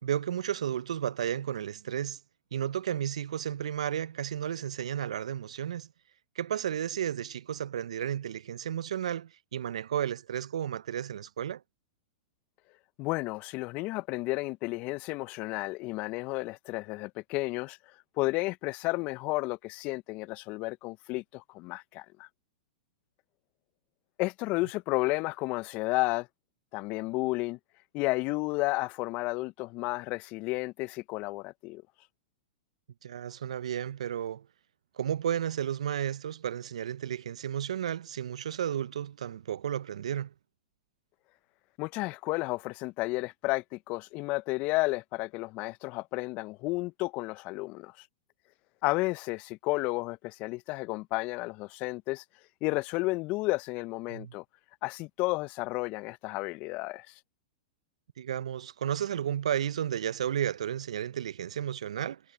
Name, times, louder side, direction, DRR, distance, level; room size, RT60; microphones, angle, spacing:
voice 1, 0.0-2.2 2.5-5.9 6.4-11.6 33.0-34.5 35.0-40.3 54.1-54.3 58.2-62.2, right 10 dB, 75° right, 0.6 m, -33 dB
voice 2, 13.0-17.8 18.2-22.3 24.2-26.3 26.7-27.6 27.9-31.8 41.8-47.9 48.8-52.2 52.6-54.4 54.8-57.1, left 22 dB, 40° left, 0.8 m, -32 dB
hypercardioid pair, 105°, 3 cm